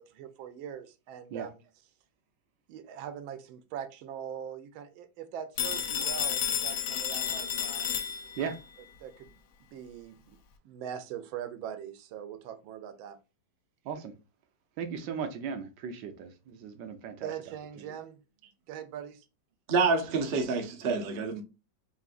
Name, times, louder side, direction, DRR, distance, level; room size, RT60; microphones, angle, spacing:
voice 1, 0.0-1.6 2.7-8.0 9.0-10.4 10.6-13.2 17.2-18.2 18.7-19.2, right 9 dB, 90° right, 1.4 m, -42 dB
Telephone, 5.6-8.6, left 8 dB, 80° left, 1.4 m, -31 dB
voice 2, 14.8-18.0, right 7 dB, 75° right, 1.3 m, -37 dB
voice 3, 19.7-21.4, right 4 dB, 55° right, 0.6 m, -27 dB
5.7 x 2.7 x 2.4 m
omnidirectional pair, 2.1 m